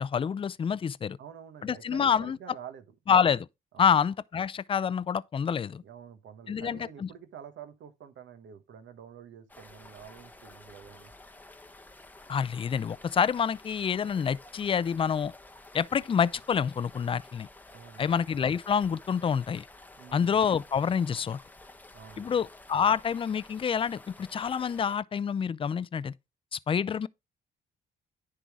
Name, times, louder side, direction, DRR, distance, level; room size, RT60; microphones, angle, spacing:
voice 1, 0.0-1.2 1.6-2.4 3.1-3.5 3.8-5.8 6.5-7.1 12.3-15.3 15.7-17.5 18.0-19.6 20.1-21.4 22.2-26.1 26.5-27.1, left 7 dB, 25° left, 0.4 m, -27 dB
voice 2, 1.2-2.8 3.7-3.9 5.8-11.1 17.7-18.2 20.0-20.4 21.9-22.4, right 8 dB, 70° right, 1.2 m, -48 dB
sound 1, 9.5-25.0, left 2 dB, 10° left, 0.8 m, -52 dB
10.0 x 3.7 x 4.6 m
cardioid pair, 90°, 20 cm